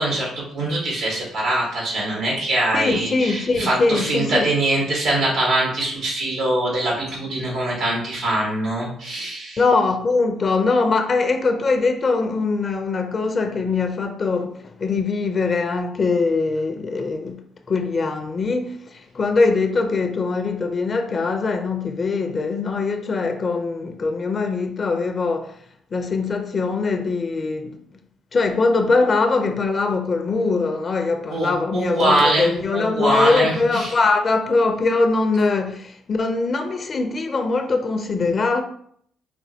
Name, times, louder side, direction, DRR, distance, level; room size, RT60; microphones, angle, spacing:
voice 1, 0.0-9.6 31.3-33.9, right 1 dB, 85° right, 1.5 m, -23 dB
voice 2, 2.7-4.5 9.6-25.6 25.9-27.8 28.3-38.6, left 3 dB, 40° left, 0.5 m, -22 dB
5.2 x 2.6 x 2.8 m
cardioid pair, 90°, 0 cm